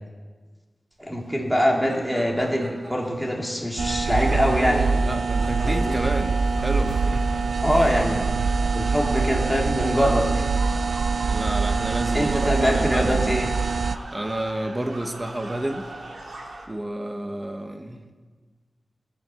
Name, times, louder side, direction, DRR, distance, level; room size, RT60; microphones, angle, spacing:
voice 1, 1.0-4.9 5.6-5.9 7.6-8.4 8.7-10.5 12.1-13.5, equal, ahead, -1 dB, 2.5 m, -23 dB
sound 1, 1.2-16.6, right 2 dB, 60° right, 2.5 m, -41 dB
sound 2, 3.8-14.0, right 4 dB, 75° right, 0.4 m, -24 dB
voice 2, 4.5-7.3 11.3-13.4 14.1-15.9 16.7-18.0, right 1 dB, 20° right, 6 dB, 1.3 m, -30 dB
21.0 x 7.3 x 7.0 m, 1.4 s
wide cardioid pair, 95°, 0 cm